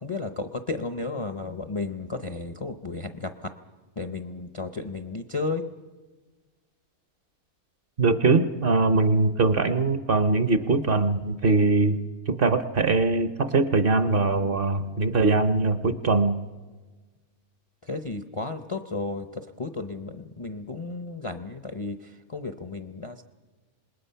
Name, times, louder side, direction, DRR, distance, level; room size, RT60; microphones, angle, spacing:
voice 1, 0.0-3.5 4.0-5.6 17.9-19.3 19.6-22.0 22.3-23.2, left 3 dB, 35° left, 8 dB, 0.5 m, -33 dB
voice 2, 8.0-12.0 12.3-16.4, right 3 dB, 45° right, 10 dB, 0.9 m, -22 dB
27.0 x 20.0 x 5.6 m, 1.3 s
omnidirectional pair, 1.5 m